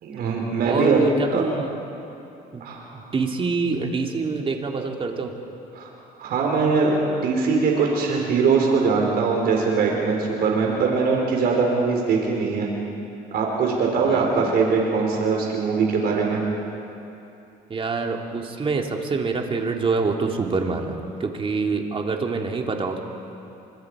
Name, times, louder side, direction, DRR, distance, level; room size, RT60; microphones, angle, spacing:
voice 1, 0.0-1.0 1.3-1.4 2.6-3.0 5.7-5.9 6.2-12.7 13.3-16.4, right 4 dB, 65° right, 0 dB, 4.2 m, -22 dB
voice 2, 0.7-1.7 2.5-2.7 2.9-5.4 14.0-14.3 17.7-23.0, right 4 dB, 30° right, 2 dB, 2.6 m, -26 dB
29.5 x 25.5 x 4.9 m, 2.8 s
cardioid pair, 110°, 17 cm